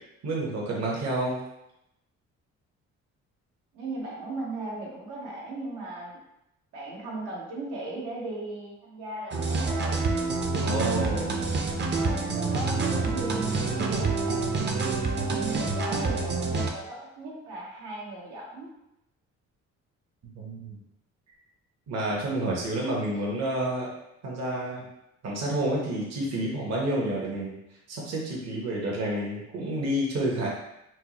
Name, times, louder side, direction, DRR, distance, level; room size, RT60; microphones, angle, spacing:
voice 1, 0.2-1.4 10.5-11.4 20.3-20.8 21.9-23.9 24.2-24.8 25.2-27.5 27.9-30.5, right 1 dB, 60° right, -3 dB, 0.9 m, -29 dB
voice 2, 3.7-6.2 6.7-10.0 10.4-11.0 11.9-14.6 15.2-18.7, right 2 dB, 90° right, -5 dB, 1.1 m, -37 dB
sound 1, 9.3-16.7, right 3 dB, 35° right, 0.5 m, -27 dB
4.3 x 2.0 x 2.9 m, 0.86 s
cardioid pair, 90°, 30 cm